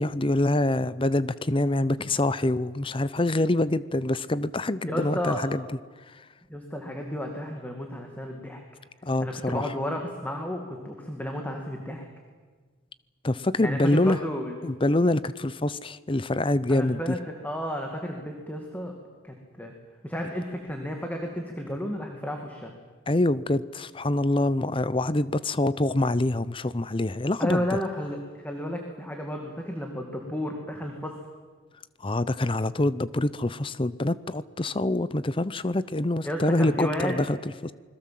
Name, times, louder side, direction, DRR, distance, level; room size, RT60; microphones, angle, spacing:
voice 1, 0.0-5.6 9.0-9.7 13.2-14.2 14.6-17.1 23.1-27.6 32.0-37.7, left 1 dB, 25° left, 16 dB, 0.7 m, -25 dB
voice 2, 4.8-5.4 6.5-8.6 9.2-12.0 13.6-14.6 16.7-18.9 19.2-19.7 20.0-22.7 27.4-31.1 36.2-37.2, equal, 10° left, 2 dB, 2.3 m, -32 dB
27.5 x 21.5 x 7.7 m, 1.5 s
head